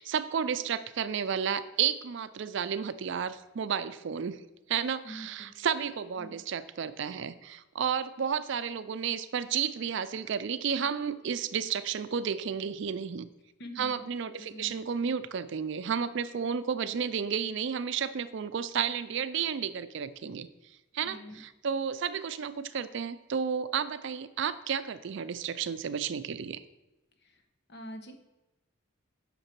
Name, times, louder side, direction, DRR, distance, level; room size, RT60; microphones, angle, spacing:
voice 1, 0.0-4.4 4.7-13.3 13.8-20.5 20.9-26.6, right 7 dB, 60° right, 14 dB, 0.4 m, -32 dB
voice 2, 5.0-5.5 6.2-6.4 13.6-14.0 14.4-14.8 21.0-21.4 27.2-27.3 27.7-28.1, equal, 55° left, 6 dB, 1.0 m, -45 dB
7.8 x 6.6 x 4.6 m, 1.0 s
head